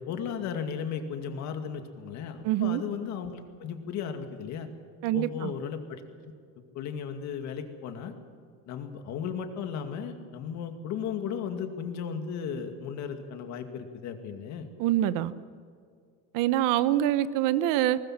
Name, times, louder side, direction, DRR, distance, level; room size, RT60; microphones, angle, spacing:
voice 1, 0.0-4.7 5.1-6.3 6.7-8.1 8.7-14.7, left 7 dB, 55° left, 6 dB, 2.3 m, -35 dB
voice 2, 2.4-2.8 5.0-5.5 14.8-15.3 16.3-18.0, right 13 dB, 70° right, 15 dB, 1.0 m, -25 dB
20.0 x 20.0 x 7.5 m, 2.2 s
cardioid pair, 170°, 34 cm